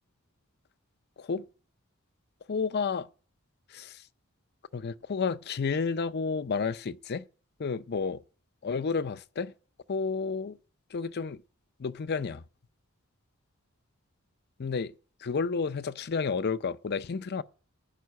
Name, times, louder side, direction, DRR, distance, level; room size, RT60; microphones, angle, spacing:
voice 1, 2.5-3.1 3.7-4.1 4.7-7.2 7.6-8.2 8.6-9.5 9.9-10.6 10.9-11.4 11.8-12.4 14.6-14.9 15.2-17.4, left 5 dB, 50° left, 0.5 m, -31 dB
14.0 x 5.5 x 9.4 m
head